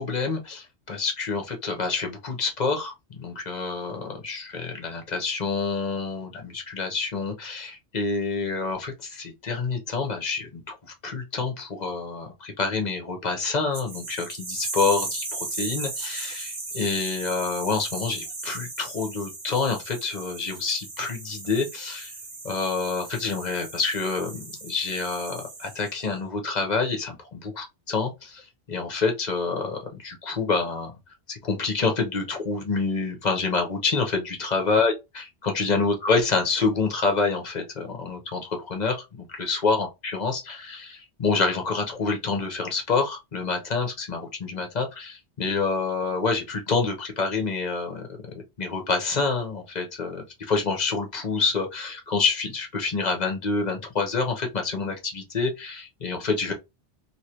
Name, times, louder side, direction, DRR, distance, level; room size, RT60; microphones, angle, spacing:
voice 1, 0.0-10.7 11.0-22.1 22.4-28.4 28.7-31.0 31.3-48.1 48.6-56.5, left 4 dB, 40° left, 0.9 m, -27 dB
sound 1, 13.7-26.1, right 3 dB, 55° right, 1.3 m, -36 dB
3.1 x 3.0 x 2.8 m
omnidirectional pair, 1.1 m